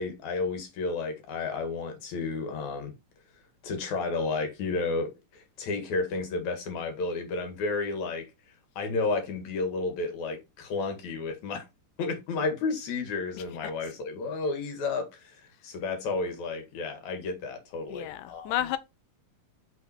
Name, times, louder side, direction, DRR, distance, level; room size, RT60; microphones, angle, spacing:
voice 1, 0.0-2.9 3.6-8.2 8.8-11.6 12.0-18.7, left 3 dB, 65° left, 3.0 m, -32 dB
voice 2, 17.9-18.8, left 13 dB, 90° left, 2.2 m, -31 dB
5.9 x 5.6 x 4.4 m
omnidirectional pair, 3.7 m